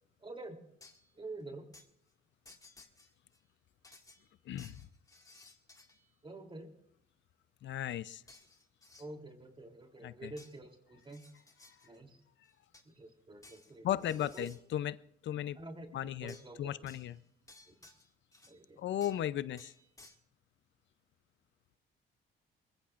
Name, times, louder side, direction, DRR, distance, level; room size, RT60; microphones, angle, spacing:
voice 1, 0.2-0.6 1.1-1.7 6.2-6.7 9.0-11.2 11.8-12.2 12.8-13.9 14.1-14.5 15.5-17.0 17.7-17.8 18.4-18.8, right 2 dB, 25° right, 4 dB, 3.2 m, -48 dB
sound 1, 0.8-1.1 1.7-1.9 2.5-3.4 3.8-6.1 8.3-9.1 10.4-10.6 11.0-12.0 12.4-13.0 13.4-14.6 16.3-16.6 16.9-18.6 19.0-19.3 19.6-20.2, left 2 dB, 15° left, 2.0 m, -59 dB
voice 2, 7.6-8.2 10.0-10.3 13.8-15.0 15.2-15.6 15.9-17.2 18.8-19.7, left 11 dB, 65° left, 16 dB, 0.6 m, -36 dB
23.0 x 21.5 x 2.5 m, 0.74 s
cardioid pair, 90°, 20 cm